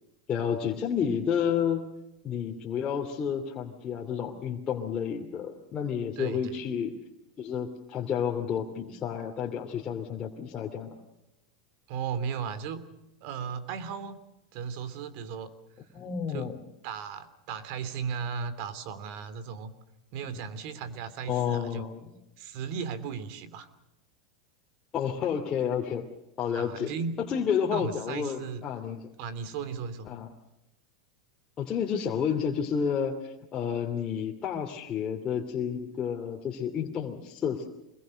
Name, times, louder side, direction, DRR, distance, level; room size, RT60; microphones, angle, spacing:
voice 1, 0.3-1.9 2.2-7.0 7.4-10.9 15.9-16.6 21.3-22.1 24.9-26.1 26.4-26.9 27.3-29.1 30.1-30.3 31.6-37.7, left 7 dB, 30° left, -1 dB, 2.9 m, -30 dB
voice 2, 6.2-6.6 11.9-12.9 13.2-14.2 14.5-15.5 16.3-16.5 16.8-19.7 20.1-21.8 22.4-23.7 26.5-27.1 27.7-28.7 29.2-30.1, right 6 dB, 60° right, 13 dB, 2.9 m, -36 dB
25.5 x 21.5 x 6.5 m, 0.90 s
hypercardioid pair, 110°, 3 cm